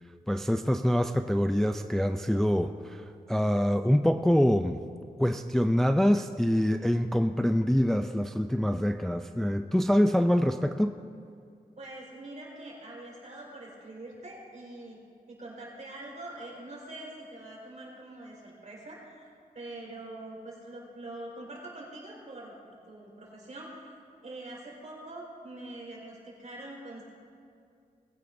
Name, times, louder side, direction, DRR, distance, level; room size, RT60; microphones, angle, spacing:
voice 1, 0.3-4.8 5.2-10.9, equal, 5° left, 7 dB, 0.3 m, -25 dB
voice 2, 11.8-15.0 15.3-22.5 22.9-23.9 24.2-27.0, right 2 dB, 55° right, -4 dB, 4.2 m, -44 dB
20.5 x 16.0 x 2.6 m, 2.3 s
wide cardioid pair, 165°, 15 cm